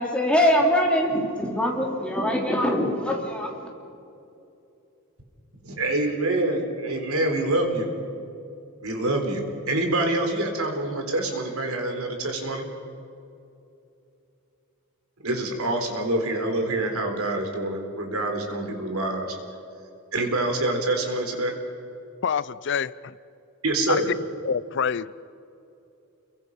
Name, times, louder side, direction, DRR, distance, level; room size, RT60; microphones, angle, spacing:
voice 1, 0.0-3.7, equal, 5° left, -1 dB, 3.3 m, -23 dB
voice 2, 5.6-7.9 8.8-12.7 15.2-19.4 20.1-21.6 23.6-24.1, right 2 dB, 75° right, 4 dB, 3.9 m, -26 dB
voice 3, 22.2-23.1 23.9-24.0 24.4-25.1, left 7 dB, 55° left, 19 dB, 0.4 m, -26 dB
29.5 x 22.5 x 5.6 m, 2.7 s
head